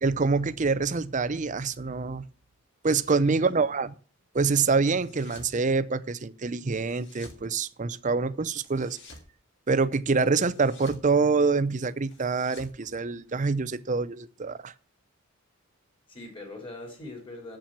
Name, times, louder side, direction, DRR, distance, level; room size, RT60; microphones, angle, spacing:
voice 1, 0.0-2.2 2.8-3.9 4.3-9.0 9.7-14.7, right 4 dB, 35° right, 0.6 m, -26 dB
voice 2, 3.2-3.7 16.1-17.6, left 2 dB, 25° left, 3.5 m, -42 dB
sound 1, 4.8-5.6 6.7-7.4 8.6-9.3 10.3-11.1 12.0-13.6, left 2 dB, 55° left, 2.2 m, -51 dB
7.6 x 7.2 x 7.6 m
head